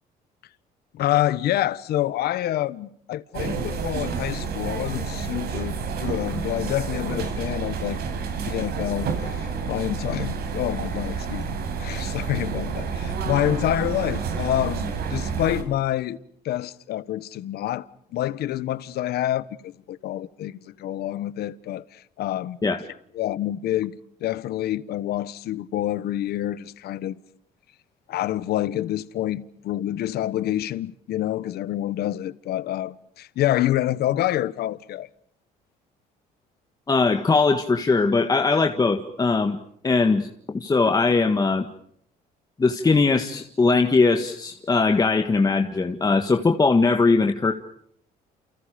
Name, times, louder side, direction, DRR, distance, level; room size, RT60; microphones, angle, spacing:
voice 1, 0.9-8.0 8.5-16.2 16.4-17.9 18.1-22.6 23.1-23.9 24.2-27.2 28.1-35.1, left 13 dB, 70° left, 1.2 m, -27 dB
sound 1, 3.3-15.6, right 5 dB, 70° right, 5.7 m, -29 dB
voice 2, 36.9-39.6 39.8-41.7 42.6-47.5, left 4 dB, 20° left, 1.7 m, -20 dB
30.0 x 29.0 x 5.1 m
cardioid pair, 110°, 17 cm